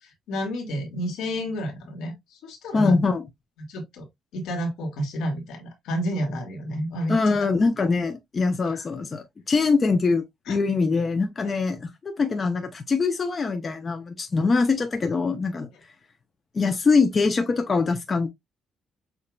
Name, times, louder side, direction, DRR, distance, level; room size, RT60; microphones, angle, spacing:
voice 1, 0.3-3.0 3.7-4.1 4.3-7.3 8.6-8.8 10.5-10.6, equal, 85° left, 1.9 m, -30 dB
voice 2, 2.7-3.2 7.1-15.7 16.5-18.3, left 4 dB, 35° left, 0.8 m, -23 dB
6.7 x 2.8 x 2.3 m
cardioid pair, 90°, 0 cm